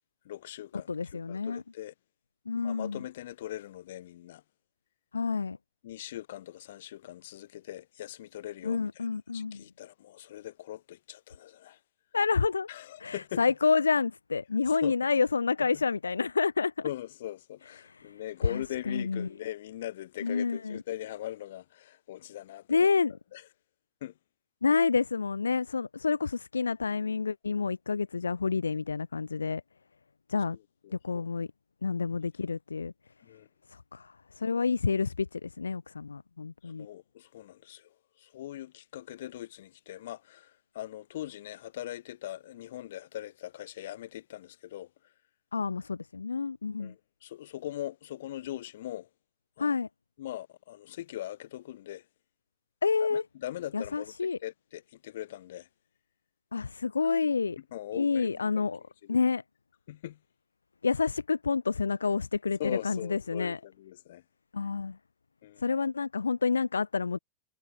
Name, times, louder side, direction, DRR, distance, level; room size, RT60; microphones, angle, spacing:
voice 1, 0.2-1.9 2.5-4.4 5.8-11.8 12.7-13.4 14.7-14.9 16.8-22.9 23.3-23.4 24.0-24.1 30.8-31.2 33.2-33.5 36.6-45.1 46.8-49.1 49.6-49.7 50.2-52.0 53.0-55.7 57.7-58.4 59.0-59.2 59.9-60.2 62.6-64.2 65.4-65.6, left 13 dB, 55° left, 4.8 m, -41 dB
voice 2, 0.9-1.6 2.5-3.0 5.1-5.6 8.6-9.6 12.1-12.7 13.0-16.7 17.8-18.1 18.4-19.3 20.2-20.8 22.7-23.1 24.6-29.6 30.3-30.6 30.9-31.5 31.8-32.9 33.7-36.9 45.5-46.9 49.6-49.9 52.8-53.2 53.7-54.4 56.5-57.6 57.9-58.8 59.1-59.4 60.8-63.6 64.5-65.0 65.6-67.2, left 5 dB, 75° left, 2.2 m, -29 dB
figure-of-eight pair, 90°, 0 cm